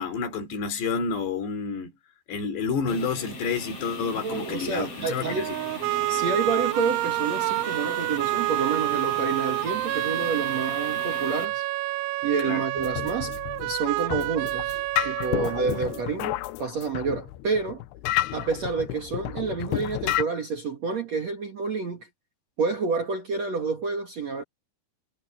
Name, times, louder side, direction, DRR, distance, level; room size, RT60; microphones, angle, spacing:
voice 1, 0.0-1.9 2.3-5.4 12.4-12.6 15.7-15.8, left 5 dB, 65° left, 5.4 m, -29 dB
sound 1, 2.9-11.5, left 2 dB, 30° left, 8.6 m, -39 dB
voice 2, 4.2-5.5 6.1-11.6 12.2-17.8 18.3-22.1 22.6-24.4, right 4 dB, 50° right, 2.3 m, -29 dB
sound 2, 5.2-16.2, right 17 dB, 85° right, 3.1 m, -28 dB
sound 3, 12.8-20.2, left 16 dB, 80° left, 2.6 m, -31 dB
omnidirectional pair, 5.4 m